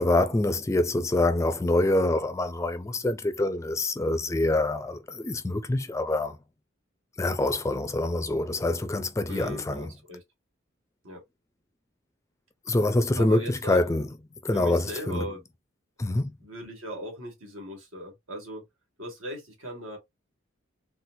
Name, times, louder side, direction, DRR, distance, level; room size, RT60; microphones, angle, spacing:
voice 1, 0.0-6.4 7.2-9.9 12.7-14.1 14.4-15.3 16.0-16.3, left 2 dB, 15° left, 0.3 m, -25 dB
voice 2, 9.3-10.2 11.0-11.2 13.2-13.8 14.5-15.4 16.4-18.6 19.0-20.0, equal, 90° right, 1.8 m, -38 dB
4.2 x 2.0 x 2.6 m
head